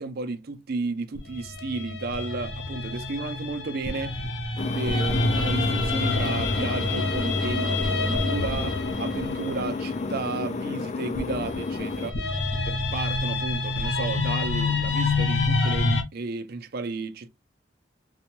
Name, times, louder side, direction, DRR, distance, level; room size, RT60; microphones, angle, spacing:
voice 1, 0.0-4.2 4.5-12.2 12.6-17.3, right 3 dB, 60° right, 0.5 m, -33 dB
sound 1, 1.2-10.3 11.2-16.0, left 3 dB, 80° left, 0.7 m, -27 dB
sound 2, 4.6-12.1, left 3 dB, 40° left, 0.3 m, -31 dB
4.0 x 2.2 x 2.9 m
head